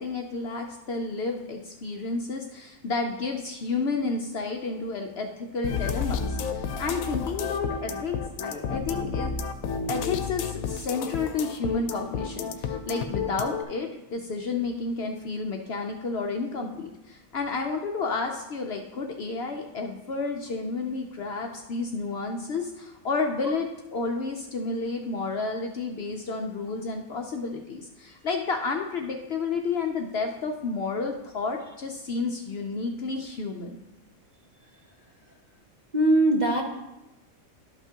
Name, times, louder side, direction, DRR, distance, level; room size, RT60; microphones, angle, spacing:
voice 1, 0.0-9.3 9.9-33.8, left 4 dB, 60° left, 3 dB, 0.7 m, -31 dB
sound 1, 5.6-13.6, left 6 dB, 80° left, 1.0 m, -31 dB
voice 2, 35.9-36.6, right 1 dB, 40° right, 1 dB, 0.7 m, -20 dB
11.5 x 5.7 x 2.8 m, 0.96 s
omnidirectional pair, 1.5 m